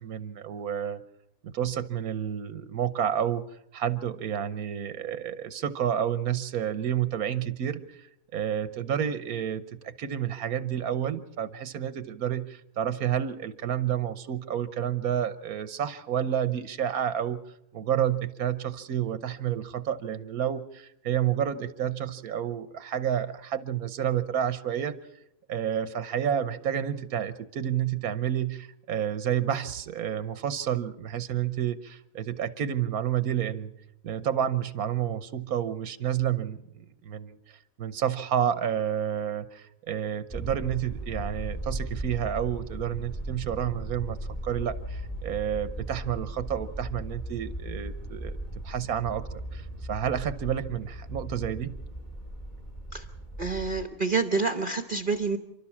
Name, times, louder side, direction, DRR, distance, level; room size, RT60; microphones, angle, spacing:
voice 1, 0.0-1.0 1.4-3.4 3.7-17.4 17.7-25.0 25.5-33.7 34.0-44.2 44.4-48.4 48.6-51.8, right 9 dB, 90° right, 13 dB, 1.4 m, -30 dB
sound 1, 40.3-53.9, right 1 dB, 30° left, 2.7 m, -37 dB
voice 2, 53.4-55.4, right 4 dB, 40° right, 8 dB, 1.0 m, -27 dB
29.5 x 12.5 x 7.2 m, 0.82 s
omnidirectional pair, 1.5 m